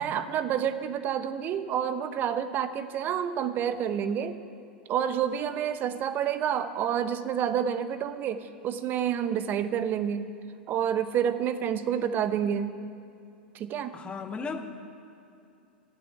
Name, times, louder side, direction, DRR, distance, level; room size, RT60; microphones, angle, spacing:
voice 1, 0.0-4.3 4.9-10.3 10.7-12.8 13.5-14.0, right 9 dB, 35° right, 11 dB, 0.9 m, -29 dB
voice 2, 13.9-14.6, left 5 dB, 20° left, 6 dB, 1.4 m, -35 dB
15.5 x 7.8 x 9.8 m, 2.6 s
figure-of-eight pair, 95°, 6 cm